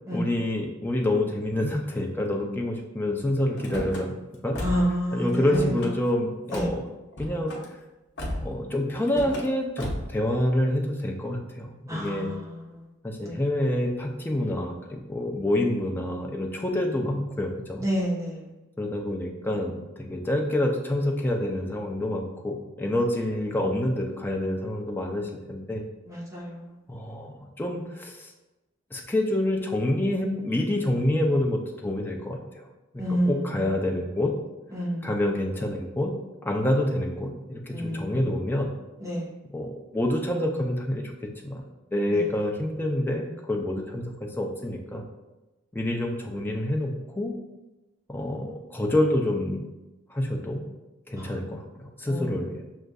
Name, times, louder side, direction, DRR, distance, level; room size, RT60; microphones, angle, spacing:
voice 1, 0.1-4.1 4.4-4.6 5.1-6.9 7.2-7.5 8.4-12.3 13.0-17.8 18.8-25.8 26.9-28.3 28.9-32.7 32.9-34.3 35.0-36.1 36.4-38.7 39.5-41.6 41.9-45.0 45.7-47.3 48.1-49.6 50.1-50.7 51.1-52.6, left 1 dB, 10° left, 1 dB, 0.4 m, -27 dB
Car / Slam, 3.6-4.0 4.5-5.0 5.3-5.9 6.5-6.7 7.1-7.6 8.2-8.6 9.0-9.5 9.8-10.2, left 1 dB, 55° left, 0.8 m, -34 dB
voice 2, 4.6-5.7 6.5-6.7 11.9-12.4 13.2-13.4 17.8-18.5 26.1-26.6 33.0-33.4 34.7-35.1 37.7-38.2 39.0-39.3 51.2-51.3 52.1-52.3, equal, 15° right, -6 dB, 0.9 m, -28 dB
6.3 x 2.5 x 2.3 m, 1.0 s
head